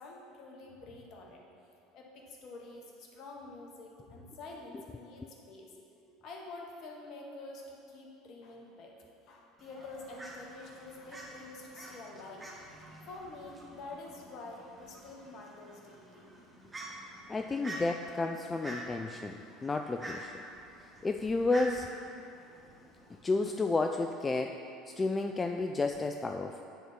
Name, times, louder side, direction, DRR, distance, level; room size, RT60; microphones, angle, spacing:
voice 1, 0.0-1.4 1.9-5.7 6.2-8.9 9.3-12.5 13.1-16.3, left 2 dB, 50° left, 0 dB, 1.3 m, -47 dB
Fowl, 9.6-23.2, right 1 dB, 15° right, 1.8 m, -48 dB
voice 2, 17.3-20.4 21.0-21.9 23.2-24.6 24.9-26.6, left 3 dB, 20° left, 5 dB, 0.3 m, -31 dB
9.3 x 4.2 x 5.3 m, 2.6 s
figure-of-eight pair, 70°, 0 cm